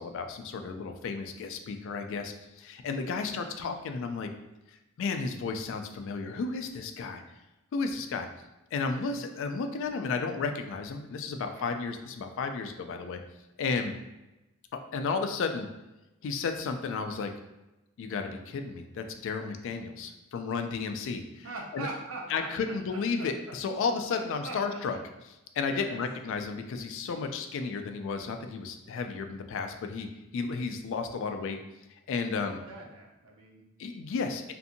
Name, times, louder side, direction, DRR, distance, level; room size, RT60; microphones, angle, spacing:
voice 1, 0.0-4.3 5.0-7.2 7.7-8.3 8.7-13.2 13.6-14.0 14.7-15.7 16.2-17.3 18.0-21.5 21.7-21.9 22.3-25.0 25.6-30.1 30.3-31.6 31.9-32.6 33.8-34.4, left 4 dB, 60° left, 6 dB, 0.3 m, -33 dB
voice 2, 11.4-11.7 21.4-23.3 24.4-24.8 25.7-26.0 32.3-33.7 33.9-34.1, right 2 dB, 70° right, -1 dB, 0.6 m, -42 dB
2.6 x 2.6 x 2.5 m, 0.99 s
head